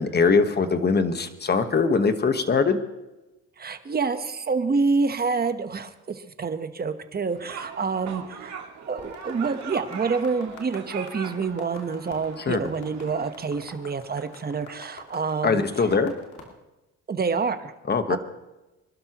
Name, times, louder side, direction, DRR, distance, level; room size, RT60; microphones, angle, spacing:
voice 1, 0.0-2.8 12.5-12.6 15.4-16.1 17.9-18.2, left 4 dB, 35° left, 9 dB, 1.3 m, -22 dB
voice 2, 3.6-8.5 8.9-15.6 17.1-17.7 18.1-18.2, right 4 dB, 30° right, 9 dB, 1.2 m, -27 dB
sound 1, 7.3-13.6, right 7 dB, 65° right, 2.1 m, -41 dB
sound 2, 9.0-16.5, left 5 dB, 80° left, 2.6 m, -45 dB
26.0 x 12.0 x 3.1 m, 1.0 s
cardioid pair, 90°, 30 cm